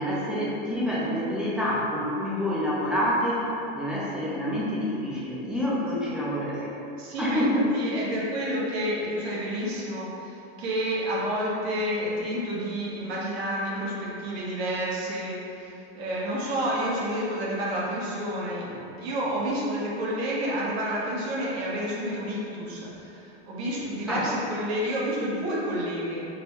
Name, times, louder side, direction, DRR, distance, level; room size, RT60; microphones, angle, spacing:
voice 1, 0.0-6.7 7.2-7.7 24.1-24.3, equal, 5° right, -7 dB, 0.4 m, -27 dB
voice 2, 7.0-7.4 7.7-26.3, equal, 80° right, -5 dB, 1.1 m, -30 dB
5.1 x 2.2 x 3.0 m, 2.9 s
supercardioid pair, 140°, 32 cm